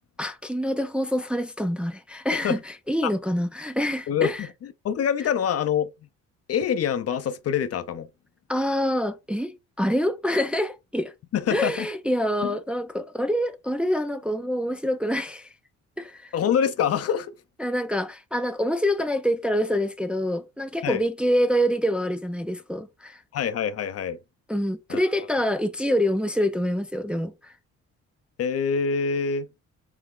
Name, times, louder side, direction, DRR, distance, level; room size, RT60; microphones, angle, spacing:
voice 1, 0.2-4.5 8.5-11.1 11.5-15.5 16.0-16.3 17.6-23.2 24.5-27.5, equal, 5° right, 0.4 m, -26 dB
voice 2, 4.1-4.5 4.8-5.9 6.5-8.1 11.3-11.9 12.4-12.5 16.3-17.3 20.8-21.0 23.3-24.2 24.9-25.0 28.4-29.5, left 7 dB, 55° left, 0.6 m, -25 dB
3.4 x 3.0 x 3.6 m
cardioid pair, 90°, 30 cm